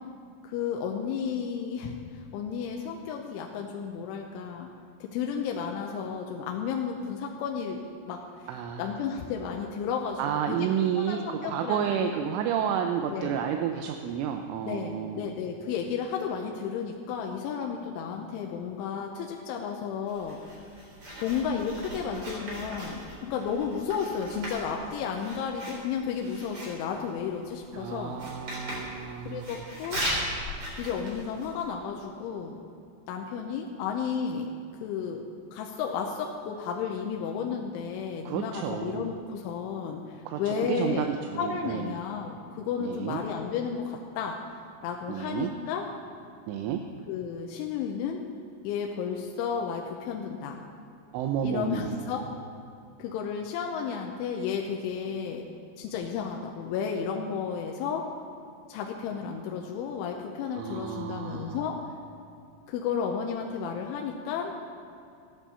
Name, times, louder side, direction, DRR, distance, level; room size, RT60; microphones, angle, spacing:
voice 1, 0.4-4.7 5.0-8.2 8.8-10.2 10.5-12.2 13.1-13.4 14.6-20.4 21.2-28.2 29.2-30.0 30.8-32.6 33.1-34.5 34.8-35.2 35.5-44.4 44.8-45.9 47.1-48.2 48.6-50.6 51.4-52.2 53.0-55.4 55.8-58.1 58.7-61.8 62.7-64.5, left 6 dB, 80° left, 1 dB, 3.1 m, -33 dB
voice 2, 8.5-8.8 10.2-15.3 27.7-29.4 38.3-39.2 40.3-41.9 42.8-43.2 45.1-45.5 46.5-46.8 51.1-52.2 60.5-61.6, right 9 dB, 80° right, 5 dB, 3.0 m, -31 dB
Writing, 20.1-31.7, equal, 30° right, 3.9 m, -38 dB
14.5 x 10.0 x 7.0 m, 2.6 s
omnidirectional pair, 6.0 m